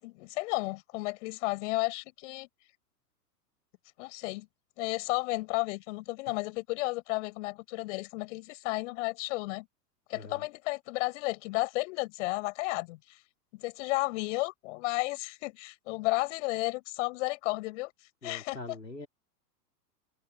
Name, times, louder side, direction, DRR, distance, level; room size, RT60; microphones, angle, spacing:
voice 1, 0.0-2.5 4.0-4.5 4.8-9.7 10.1-13.2 13.5-17.9 18.2-18.6, left 22 dB, 45° left, 7.1 m, -33 dB
voice 2, 10.1-10.4 18.2-19.1, left 2 dB, 85° left, 3.1 m, -43 dB
figure-of-eight pair, 95°, 49 cm